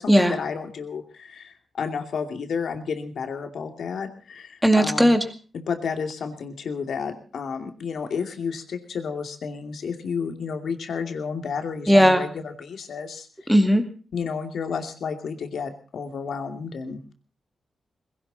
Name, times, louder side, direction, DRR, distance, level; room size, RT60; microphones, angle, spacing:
voice 1, 0.0-5.2 5.5-13.5 14.1-17.1, left 6 dB, 75° left, 6 dB, 2.5 m, -31 dB
voice 2, 4.6-5.2 11.9-12.2 13.5-13.9, equal, ahead, 6 dB, 2.2 m, -16 dB
21.0 x 17.0 x 4.1 m, 0.36 s
cardioid pair, 105°, 0 cm